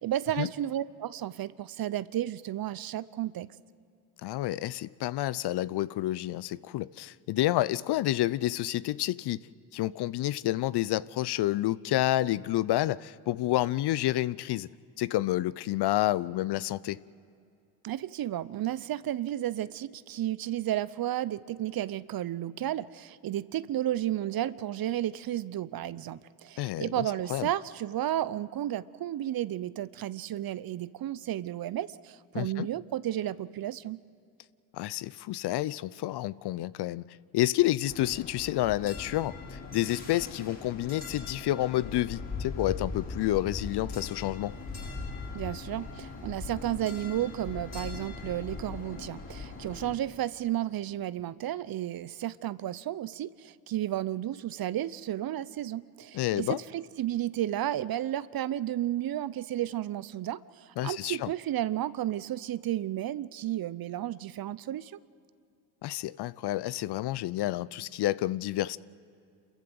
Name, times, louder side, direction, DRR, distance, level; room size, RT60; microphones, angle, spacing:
voice 1, 0.0-3.5 17.8-34.0 45.3-65.0, right 12 dB, 45° right, 0.7 m, -33 dB
voice 2, 4.2-9.4 9.7-14.7 15.0-17.0 26.6-27.0 27.3-27.5 32.3-32.7 34.7-37.0 37.3-44.6 56.1-56.6 60.8-61.3 65.8-68.8, left 15 dB, 55° left, 0.6 m, -29 dB
sound 1, 37.9-50.0, left 4 dB, 35° left, 4.6 m, -40 dB
28.0 x 15.0 x 7.8 m
supercardioid pair, 65°, 48 cm